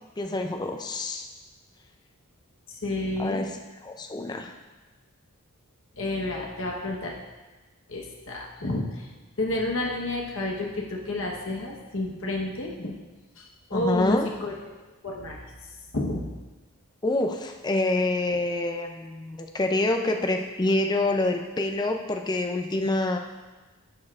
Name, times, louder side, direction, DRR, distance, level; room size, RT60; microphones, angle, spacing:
voice 1, 0.2-1.3 3.2-3.6 3.8-4.5 13.7-14.3 17.0-23.2, left 2 dB, 20° left, 4 dB, 0.4 m, -26 dB
voice 2, 2.7-3.4 6.0-7.1 7.9-9.1 9.4-12.9 13.4-14.5 15.0-15.4 15.9-16.3, left 2 dB, 60° left, -1 dB, 1.1 m, -30 dB
10.5 x 6.9 x 2.4 m, 1.2 s
head